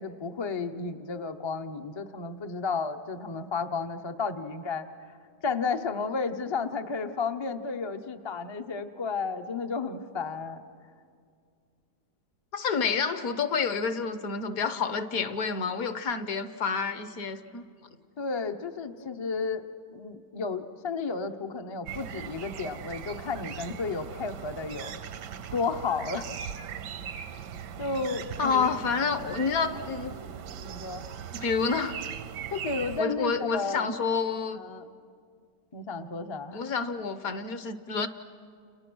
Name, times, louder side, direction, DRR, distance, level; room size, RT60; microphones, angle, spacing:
voice 1, 0.0-4.9 5.4-10.6 18.2-19.6 19.9-24.9 25.5-26.3 27.8-28.7 30.6-31.0 32.5-33.9 34.5-34.9 35.7-36.6, left 4 dB, 40° left, 6 dB, 0.4 m, -32 dB
voice 2, 12.5-17.6 28.4-30.2 31.3-32.0 33.0-34.6 36.5-38.1, left 5 dB, 60° left, 11 dB, 1.3 m, -29 dB
sound 1, 21.9-33.0, right 8 dB, 80° right, 1.4 m, -39 dB
29.5 x 29.5 x 6.2 m, 2.3 s
omnidirectional pair, 1.9 m